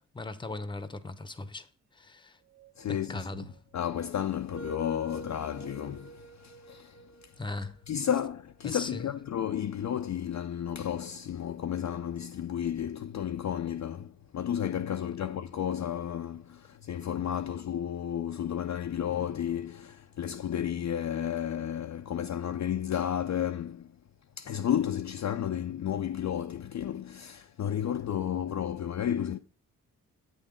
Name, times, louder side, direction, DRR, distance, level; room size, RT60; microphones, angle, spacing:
voice 1, 0.0-1.7 1.9-2.4 2.9-3.5 7.4-7.8 8.6-9.1, left 2 dB, 10° left, 0.8 m, -38 dB
sound 1, 2.4-9.4 10.1-13.8, right 5 dB, 40° right, 1.3 m, -52 dB
voice 2, 2.8-3.5 3.7-7.0 7.9-23.9 24.4-29.4, left 9 dB, 45° left, 0.5 m, -32 dB
8.3 x 3.7 x 5.1 m
supercardioid pair, 45°, 39 cm